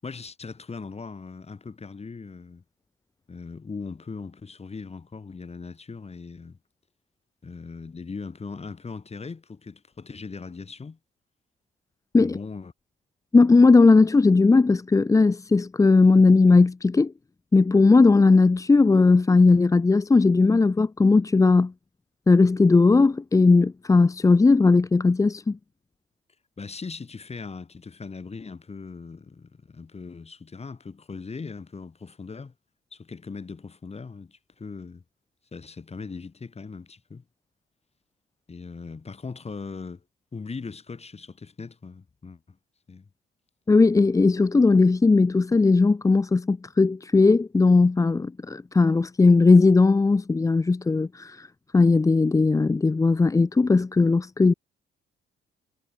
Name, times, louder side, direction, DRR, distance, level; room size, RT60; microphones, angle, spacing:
voice 1, 0.0-2.6 3.3-6.6 7.4-11.0 12.2-12.7 26.6-32.5 32.9-35.0 35.5-37.2 38.5-40.0 40.3-42.6 42.9-43.1, left 4 dB, 30° left, 7.6 m, -39 dB
voice 2, 13.3-17.1 17.5-21.7 22.3-25.6 43.7-51.5 51.7-54.5, left 3 dB, 15° left, 0.5 m, -18 dB
cardioid pair, 90°, 20 cm